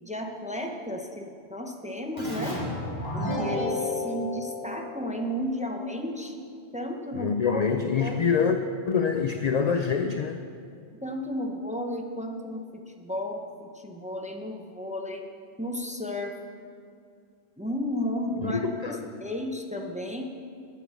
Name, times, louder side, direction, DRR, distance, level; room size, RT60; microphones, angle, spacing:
voice 1, 0.0-2.6 3.1-6.3 6.7-7.7 8.0-8.3 10.1-10.2 11.0-15.3 15.6-16.4 17.6-20.2, equal, 5° right, 2 dB, 0.7 m, -33 dB
Keyboard (musical), 2.2-5.5, left 2 dB, 25° left, 2.3 m, -31 dB
voice 2, 7.1-8.6 8.9-10.4 18.4-19.1, left 6 dB, 55° left, 6 dB, 0.4 m, -25 dB
10.0 x 7.2 x 7.0 m, 2.3 s
omnidirectional pair, 1.2 m